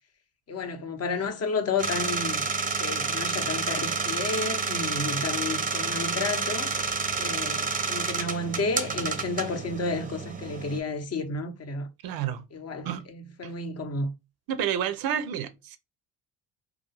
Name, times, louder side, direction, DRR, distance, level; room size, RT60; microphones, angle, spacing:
voice 1, 0.5-2.4 2.8-6.7 7.2-11.9 12.5-14.1, left 3 dB, 35° left, 0.7 m, -31 dB
sound 1, 1.8-10.8, right 4 dB, 20° right, 0.6 m, -29 dB
voice 2, 12.0-12.4 12.8-13.0 13.4-13.5 14.5-15.8, right 9 dB, 60° right, 0.6 m, -29 dB
2.4 x 2.3 x 2.9 m
hypercardioid pair, 55°, 41 cm